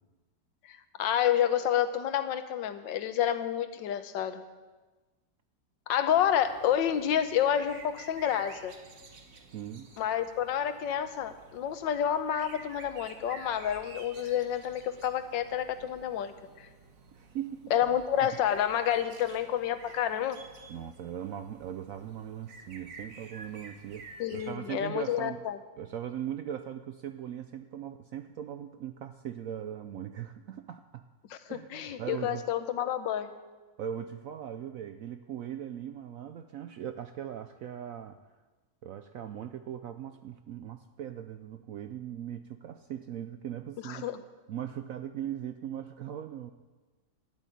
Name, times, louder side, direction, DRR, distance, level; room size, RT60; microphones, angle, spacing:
voice 1, 0.7-4.4 5.9-8.7 10.0-16.7 17.7-20.4 24.2-25.6 31.5-33.3 43.8-44.2, left 10 dB, 85° left, 11 dB, 1.5 m, -29 dB
sound 1, 6.1-24.5, right 4 dB, 50° right, 1.6 m, -51 dB
voice 2, 9.5-9.9 17.1-17.7 18.2-18.3 20.7-25.4 25.8-31.0 31.5-32.4 33.8-38.2 38.8-44.1 44.5-46.5, right 10 dB, 70° right, 9 dB, 0.8 m, -39 dB
12.0 x 8.1 x 9.2 m, 1.2 s
omnidirectional pair, 1.9 m